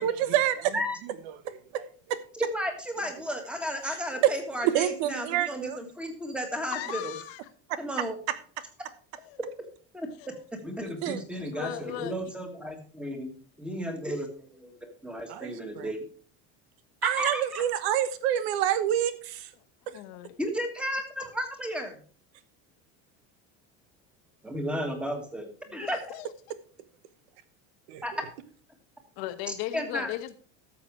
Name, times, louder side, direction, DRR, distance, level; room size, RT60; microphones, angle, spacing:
voice 1, 0.0-2.2 4.2-4.3 4.6-5.8 8.0-8.1 11.0-11.2 15.3-15.9 17.0-19.5 27.9-28.2, right 11 dB, 85° right, 1.2 m, -28 dB
voice 2, 2.4-7.1 7.8-8.2 9.9-10.1 10.6-16.1 17.2-17.6 20.4-22.0 24.4-26.0 28.0-28.2 29.5-30.1, equal, 5° right, 1.6 m, -33 dB
voice 3, 6.7-7.4 9.2-9.4 10.2-10.4 11.5-12.1 19.9-20.4 25.7-26.3 29.2-30.4, left 14 dB, 75° left, 1.2 m, -37 dB
12.5 x 6.8 x 4.7 m
cardioid pair, 170°, 31 cm